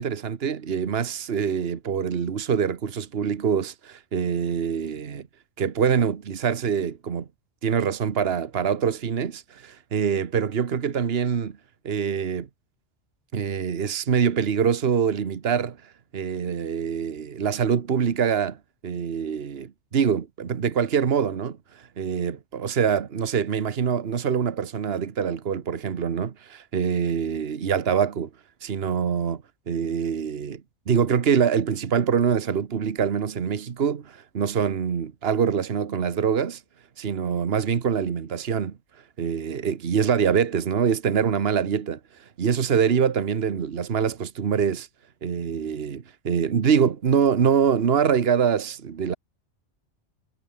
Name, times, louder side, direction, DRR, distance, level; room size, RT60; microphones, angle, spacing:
voice 1, 0.0-5.3 5.6-7.3 7.6-11.6 11.8-12.5 13.3-15.8 16.1-18.6 18.8-21.6 22.0-28.3 28.6-30.6 30.9-36.6 37.0-38.8 39.2-42.0 42.4-44.9 45.2-49.1, right 7 dB, 55° right, 1.4 m, -24 dB
omnidirectional pair, 1.2 m